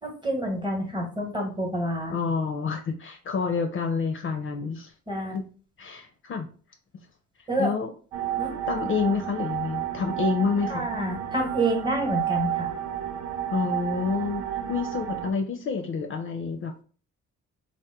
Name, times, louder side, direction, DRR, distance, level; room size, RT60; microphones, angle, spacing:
voice 1, 0.0-2.2 5.1-5.4 7.5-7.7 8.4-8.5 10.7-12.7, right 1 dB, 15° right, 2 dB, 1.0 m, -28 dB
voice 2, 2.1-4.9 5.3-5.4 5.8-6.5 7.6-7.9 8.7-10.8 13.5-16.8, left 5 dB, 45° left, 5 dB, 0.5 m, -28 dB
sound 1, 8.1-15.3, right 11 dB, 65° right, 0.5 m, -31 dB
2.9 x 2.1 x 3.4 m, 0.40 s
cardioid pair, 90°, 30 cm